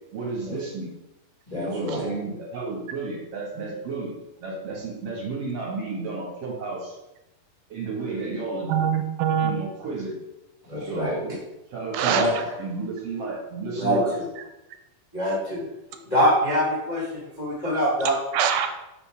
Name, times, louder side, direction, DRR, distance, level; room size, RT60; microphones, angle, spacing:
voice 1, 0.1-1.0 1.5-4.1 4.4-7.0 7.7-8.7 9.4-10.2 10.8-11.3 11.7-14.1, right 3 dB, 50° right, -3 dB, 2.1 m, -32 dB
voice 2, 1.5-2.0 10.7-11.1 12.1-12.3 13.8-14.3 15.1-15.7 16.1-18.2, equal, 80° left, -7 dB, 0.3 m, -24 dB
voice 3, 8.7-9.5 11.9-12.4 18.3-18.7, right 8 dB, 85° right, 6 dB, 2.5 m, -23 dB
5.1 x 4.1 x 5.7 m, 0.94 s
omnidirectional pair, 4.2 m